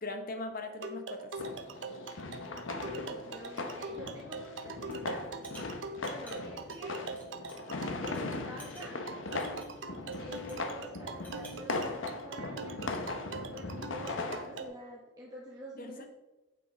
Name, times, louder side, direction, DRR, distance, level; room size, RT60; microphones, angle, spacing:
voice 1, 0.0-1.3 15.8-16.1, left 2 dB, 45° left, 5 dB, 1.0 m, -40 dB
sound 1, 0.8-14.7, right 3 dB, 75° right, 0.7 m, -43 dB
sound 2, 1.4-14.7, left 3 dB, 90° left, 0.9 m, -39 dB
voice 2, 2.3-5.3 6.0-7.1 8.0-8.9 10.2-12.8 13.5-16.1, equal, 20° right, -4 dB, 1.1 m, -47 dB
sound 3, 4.8-5.0 5.4-7.8 8.1-8.2 8.6-10.7 11.1-11.6, right 1 dB, 10° left, 1.8 m, -55 dB
7.9 x 6.0 x 4.6 m, 1.1 s
head